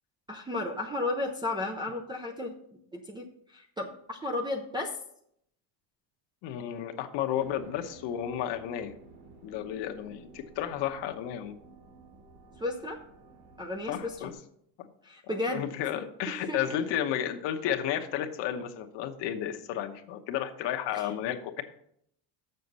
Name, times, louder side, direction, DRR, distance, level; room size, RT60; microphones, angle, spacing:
voice 1, 0.3-2.6 2.9-5.0 12.6-13.0 13.6-14.1 15.0-15.7 16.5-16.8 21.0-21.1, left 2 dB, 10° right, -2 dB, 0.3 m, -33 dB
voice 2, 6.4-8.9 9.4-11.5 13.9-14.4 14.8-14.9 15.3-21.6, left 10 dB, 65° left, 6 dB, 1.0 m, -32 dB
sound 1, 7.4-14.3, right 3 dB, 70° right, 2.3 m, -53 dB
7.0 x 6.6 x 5.4 m, 0.71 s
cardioid pair, 160°, 48 cm